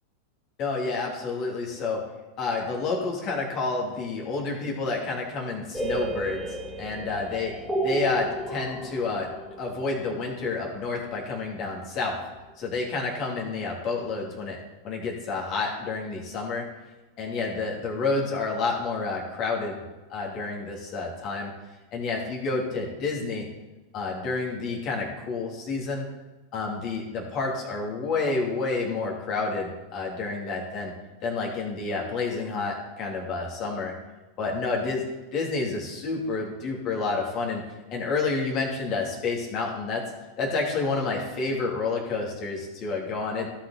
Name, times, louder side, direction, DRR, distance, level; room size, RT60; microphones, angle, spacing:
voice 1, 0.6-2.0 2.4-7.5 7.8-9.3 9.6-12.2 12.6-14.6 14.8-16.6 17.2-19.8 20.1-21.5 21.9-23.5 23.9-26.1 26.5-30.9 31.2-33.9 34.4-35.0 35.3-37.6 37.9-40.0 40.4-43.5, left 3 dB, 40° left, -1 dB, 3.1 m, -29 dB
sound 1, 5.7-11.5, right 2 dB, ahead, 1.9 m, -33 dB
16.5 x 6.1 x 4.3 m, 1.1 s
figure-of-eight pair, 85°, 0 cm